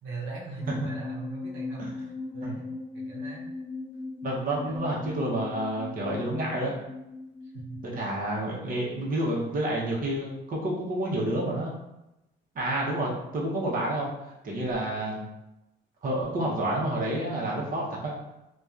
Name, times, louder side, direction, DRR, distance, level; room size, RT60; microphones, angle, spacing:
voice 1, 0.0-2.7 2.9-3.5 4.6-4.9 7.5-7.8 14.8-14.9, right 3 dB, 90° right, -5 dB, 0.8 m, -40 dB
sound 1, 0.6-8.0, left 3 dB, 35° left, 1.0 m, -38 dB
voice 2, 4.2-6.8 7.8-11.7 12.5-15.2 16.0-18.1, right 1 dB, 45° right, -4 dB, 0.8 m, -29 dB
2.7 x 2.3 x 2.4 m, 0.91 s
cardioid pair, 90°, 20 cm